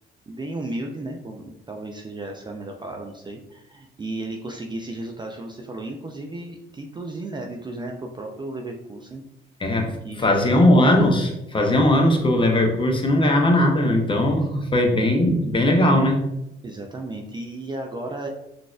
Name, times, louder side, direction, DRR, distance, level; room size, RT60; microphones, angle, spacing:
voice 1, 0.3-9.2 10.0-10.6 16.6-18.3, right 2 dB, 25° right, 2 dB, 0.3 m, -34 dB
voice 2, 9.6-9.9 10.2-16.2, left 1 dB, 25° left, 2 dB, 0.6 m, -19 dB
3.9 x 2.5 x 2.4 m, 0.84 s
cardioid pair, 90°, 20 cm